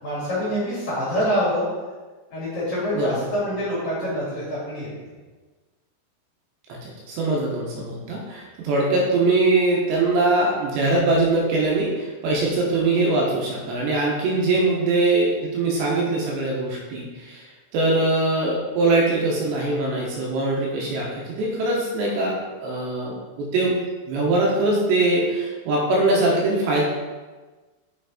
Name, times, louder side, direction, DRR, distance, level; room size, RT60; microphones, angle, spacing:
voice 1, 0.0-1.7 2.3-4.9, equal, 45° left, -8 dB, 3.2 m, -25 dB
voice 2, 6.8-17.4 17.7-23.8 24.1-26.8, right 2 dB, 75° right, -3 dB, 3.1 m, -22 dB
7.0 x 5.9 x 4.2 m, 1.3 s
omnidirectional pair, 5.5 m